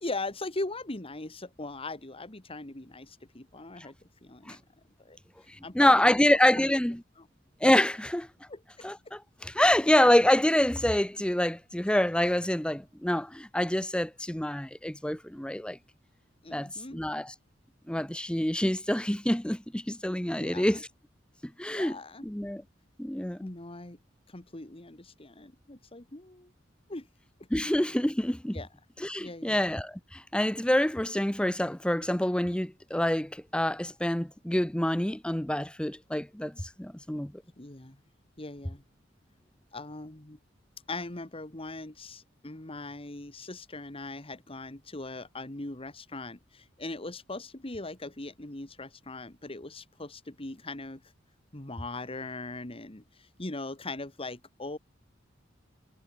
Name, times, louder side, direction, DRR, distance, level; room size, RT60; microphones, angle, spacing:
voice 1, 0.0-3.9 4.2-4.6 5.0-5.2 5.6-6.7 8.5-8.9 16.4-17.0 20.3-20.8 21.7-22.3 23.4-24.0 24.3-26.5 26.9-27.1 28.5-28.7 29.2-29.6 37.6-38.0 38.4-38.8 39.7-40.4 40.9-51.0 51.5-54.8, left 2 dB, 30° left, 1.8 m, -40 dB
voice 2, 5.7-7.0 7.6-8.3 8.8-15.8 16.5-17.3 17.9-20.8 21.6-22.0 22.2-22.6 23.0-23.5 27.5-28.6 29.0-37.3, left 1 dB, 5° left, 0.7 m, -26 dB
head